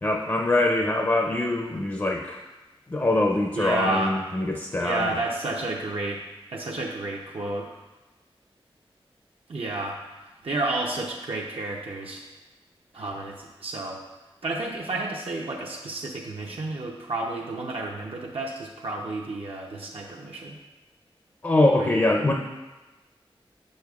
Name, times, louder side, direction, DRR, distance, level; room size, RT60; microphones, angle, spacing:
voice 1, 0.0-2.4 2.9-5.1 21.4-22.3, left 2 dB, 25° left, 1 dB, 0.5 m, -23 dB
voice 2, 3.5-4.1 4.7-6.2 6.5-7.7 9.5-10.0 10.4-12.3 12.9-14.0 14.4-20.6 21.7-22.1, right 2 dB, 75° right, -3 dB, 0.6 m, -31 dB
6.4 x 6.3 x 2.4 m, 1.1 s
wide cardioid pair, 95°, 10 cm